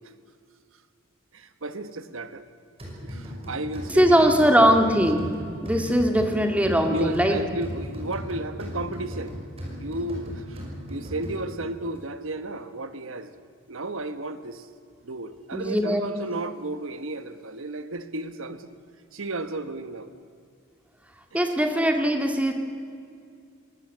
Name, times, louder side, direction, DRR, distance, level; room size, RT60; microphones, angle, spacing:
voice 1, 1.3-2.4 3.0-4.4 4.7-5.0 6.9-9.4 9.7-13.3 13.7-14.7 15.0-18.7 19.1-20.1 21.3-21.5, right 2 dB, 80° right, 11 dB, 1.2 m, -33 dB
sound 1, 2.8-11.7, equal, 30° right, 5.9 m, -37 dB
voice 2, 3.9-5.3 5.6-7.3 15.5-16.0 21.3-22.5, equal, 5° right, 4 dB, 2.1 m, -20 dB
22.5 x 19.0 x 7.9 m, 2.3 s
head